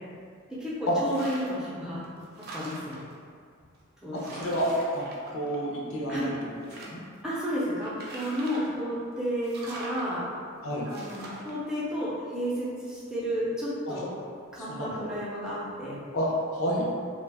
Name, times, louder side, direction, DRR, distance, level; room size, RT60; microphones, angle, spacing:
voice 1, 0.5-2.0 2.5-3.0 4.0-4.4 6.1-6.3 7.2-10.2 10.9-14.1 14.5-16.0, equal, 5° right, -9 dB, 0.6 m, -32 dB
sound 1, 1.0-1.7 2.0-3.1 3.7-3.8 4.2-5.9 6.2-7.2 7.8-8.8 9.4-10.1 10.9-11.5, right 2 dB, 50° right, 0.4 m, -43 dB
voice 2, 4.1-5.0 5.3-7.0 10.6-10.9 13.9-14.0 14.6-15.0 16.1-16.9, equal, 85° left, -4 dB, 0.6 m, -30 dB
2.5 x 2.2 x 3.3 m, 2.1 s
head